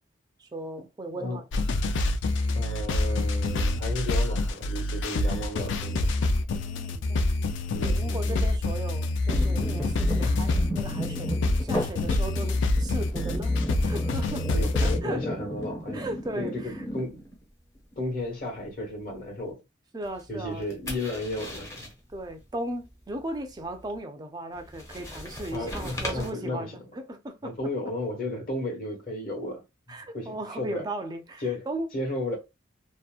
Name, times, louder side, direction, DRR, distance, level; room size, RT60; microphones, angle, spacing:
voice 1, 0.4-1.5 6.5-7.3 7.8-13.6 13.8-14.5 14.8-15.3 15.9-16.8 19.9-20.7 22.1-27.5 29.9-31.9, right 1 dB, 20° right, 0.4 m, -37 dB
sound 1, 1.5-15.0, left 2 dB, 65° left, 0.3 m, -26 dB
voice 2, 2.5-6.1 7.7-8.5 14.5-16.0 16.3-17.2 18.0-19.6 20.3-21.9 25.5-26.7 27.4-30.8 31.4-31.7 31.9-32.4, left 1 dB, 50° left, 1.1 m, -34 dB
sound 2, 9.3-17.4 17.8-18.1 20.4-21.9 24.6-26.3, equal, 15° left, 0.7 m, -35 dB
2.8 x 2.1 x 2.3 m
head